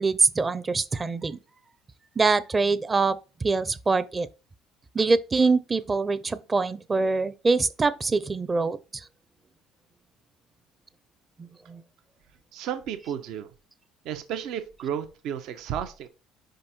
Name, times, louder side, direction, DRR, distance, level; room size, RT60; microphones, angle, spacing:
voice 1, 0.0-1.4 2.2-4.3 4.9-9.0 11.4-11.8, right 3 dB, 25° right, 0.7 m, -24 dB
voice 2, 12.5-13.5 14.0-16.1, right 9 dB, 70° right, 0.9 m, -33 dB
5.3 x 5.1 x 4.4 m
supercardioid pair, 80°, 0 cm